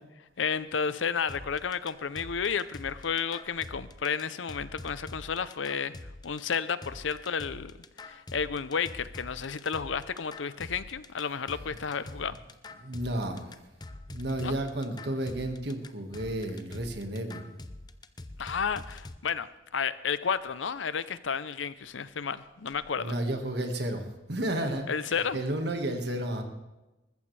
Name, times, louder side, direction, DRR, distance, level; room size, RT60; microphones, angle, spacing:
voice 1, 0.4-5.9 6.2-7.7 8.0-12.4 14.4-14.5 18.4-23.2 24.9-25.4, left 6 dB, 80° left, 14 dB, 0.6 m, -32 dB
Jump da joint drumloop, 1.3-19.2, left 2 dB, 20° left, 0.6 m, -45 dB
voice 2, 12.8-13.5 14.1-17.5 23.0-26.4, right 1 dB, 55° right, 5 dB, 1.8 m, -32 dB
20.5 x 14.5 x 3.4 m, 1.0 s
head